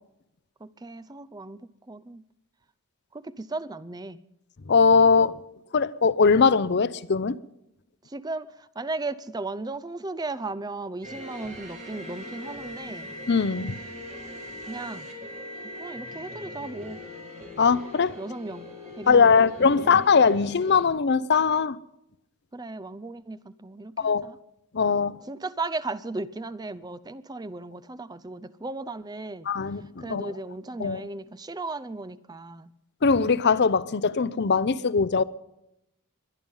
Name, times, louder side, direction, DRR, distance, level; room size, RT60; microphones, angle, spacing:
voice 1, 0.6-1.6 1.9-2.2 3.1-4.2 8.1-13.1 14.7-15.1 15.8-17.0 18.2-18.7 19.0-19.4 19.8-20.1 22.5-24.4 25.3-29.5 30.0-32.7, right 3 dB, 20° right, 0.5 m, -36 dB
voice 2, 4.7-5.4 5.7-7.4 13.3-13.8 17.6-18.2 19.1-21.8 24.0-24.3 24.7-25.2 29.5-30.3 30.8-31.0 33.0-35.2, left 5 dB, 50° left, 0.6 m, -21 dB
sound 1, 11.0-20.9, left 1 dB, 35° right, 4.7 m, -41 dB
22.5 x 10.5 x 5.5 m
head